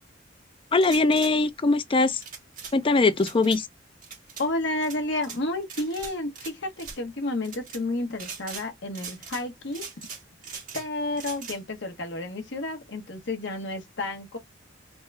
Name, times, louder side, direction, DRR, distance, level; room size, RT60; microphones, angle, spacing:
voice 1, 0.7-2.2 2.7-3.7, left 3 dB, 30° left, 0.4 m, -21 dB
sound 1, 0.8-1.3 2.2-2.7 3.2-3.6 4.0-4.5 4.8-5.4 5.7-6.5 6.8-7.0 7.4-7.8 8.2-8.7 8.9-9.4 9.7-10.9 11.1-11.6, right 6 dB, 45° right, 1.7 m, -40 dB
voice 2, 4.4-9.9 10.7-14.4, left 2 dB, 65° left, 1.0 m, -31 dB
3.5 x 2.3 x 3.2 m
head